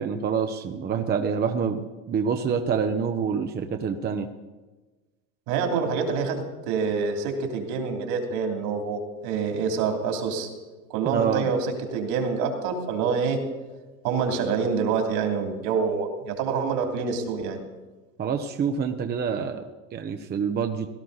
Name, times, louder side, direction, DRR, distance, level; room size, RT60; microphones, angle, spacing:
voice 1, 0.0-4.3 11.0-11.5 18.2-20.9, right 6 dB, 20° right, 6 dB, 0.8 m, -27 dB
voice 2, 5.5-10.5 10.9-13.4 14.0-17.6, right 5 dB, 60° right, 3 dB, 3.0 m, -26 dB
18.0 x 12.0 x 4.0 m, 1.2 s
supercardioid pair, 115°, 43 cm